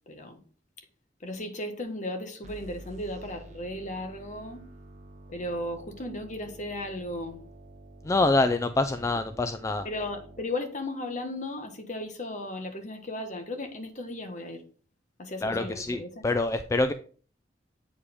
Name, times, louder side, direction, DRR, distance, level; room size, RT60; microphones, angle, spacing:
voice 1, 0.1-0.4 1.2-4.6 5.3-7.4 9.8-14.6 15.2-16.2, left 1 dB, 45° left, 1.3 m, -35 dB
sound 1, 2.4-10.4, right 1 dB, 40° right, 1.2 m, -49 dB
voice 2, 8.0-9.9 15.4-16.9, left 2 dB, 15° left, 0.3 m, -26 dB
8.3 x 4.9 x 3.6 m
head